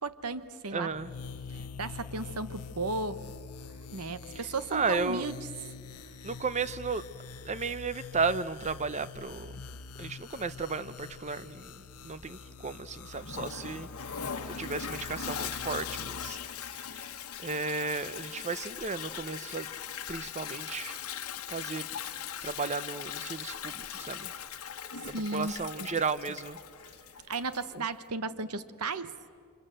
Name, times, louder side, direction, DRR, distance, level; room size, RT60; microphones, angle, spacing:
voice 1, 0.0-0.9 1.8-3.2 3.9-5.3 25.1-25.5 25.8-25.9 27.3-29.2, right 3 dB, 80° right, 1.1 m, -34 dB
voice 2, 0.7-1.1 1.6-1.7 4.7-5.3 6.2-7.1 7.4-9.5 10.0-16.4 16.7-17.1 17.4-19.7 20.1-21.0 21.5-21.9 22.4-24.3 25.0-26.6 27.7-27.8, right 4 dB, 30° right, 0.7 m, -34 dB
sound 1, 0.9-16.3, left 5 dB, 90° left, 0.8 m, -45 dB
Toilet flush, 13.1-27.8, left 8 dB, 70° left, 1.2 m, -40 dB
29.5 x 26.5 x 7.7 m
head